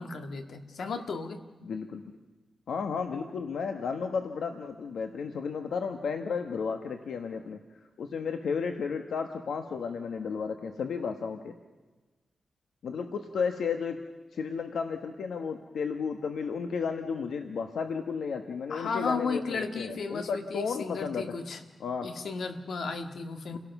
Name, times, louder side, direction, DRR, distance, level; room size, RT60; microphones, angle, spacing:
voice 1, 0.0-1.4 18.7-21.6 22.0-23.6, left 4 dB, 75° left, 6 dB, 1.9 m, -34 dB
voice 2, 1.6-2.0 2.7-7.6 8.0-11.5 12.8-14.0 14.3-21.2 21.8-22.1 23.5-23.6, left 5 dB, 90° left, 5 dB, 1.3 m, -33 dB
29.0 x 18.0 x 6.0 m, 1.2 s
wide cardioid pair, 155°, 0 cm